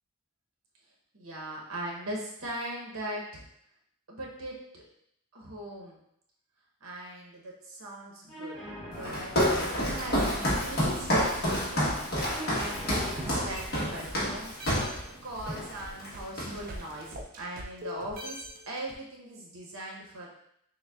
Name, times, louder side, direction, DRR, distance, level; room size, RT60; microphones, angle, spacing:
voice 1, 1.1-3.4 4.1-4.8 5.3-6.0 6.8-12.1 12.5-14.5 15.2-20.3, right 1 dB, 80° right, -2 dB, 0.9 m, -40 dB
sound 1, 8.3-16.3, equal, ahead, 1.0 m, -46 dB
Walk footsteps, 9.0-15.0 15.5-15.7 16.0-16.8, equal, 45° left, 1.2 m, -29 dB
sound 2, 10.1-14.3 14.6-18.9, equal, 40° right, 0.4 m, -43 dB
6.5 x 2.2 x 2.3 m, 0.73 s
head